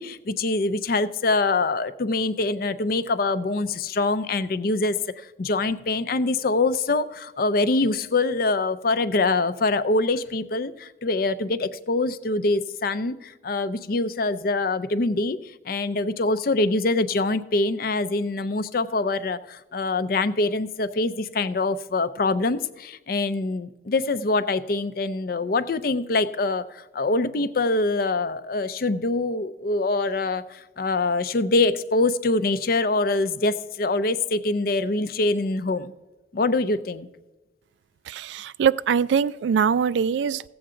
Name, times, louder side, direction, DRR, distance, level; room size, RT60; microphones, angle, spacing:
voice 1, 0.0-15.4 15.6-35.9 36.3-37.1, left 2 dB, 55° left, 13 dB, 0.5 m, -24 dB
voice 2, 38.1-40.4, right 7 dB, 80° right, 19 dB, 0.3 m, -22 dB
15.5 x 7.9 x 3.8 m, 1.1 s
head